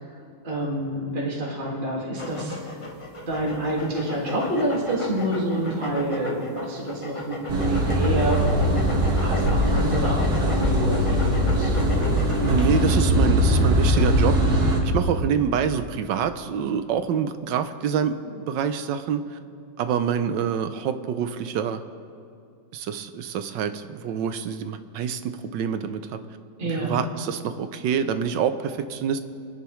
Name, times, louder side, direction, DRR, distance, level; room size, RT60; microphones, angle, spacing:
voice 1, 0.4-2.8 3.3-8.8 9.2-11.8 26.6-27.0, right 1 dB, 25° right, -5 dB, 2.1 m, -28 dB
sound 1, 2.2-13.1, left 1 dB, 25° left, 0.8 m, -36 dB
sound 2, 7.5-14.8, equal, 55° right, 2.1 m, -21 dB
voice 2, 12.4-19.4 19.8-21.8 22.7-26.2 26.7-29.2, right 7 dB, 75° right, 10 dB, 1.4 m, -26 dB
27.5 x 10.0 x 3.1 m, 2.6 s
omnidirectional pair, 2.0 m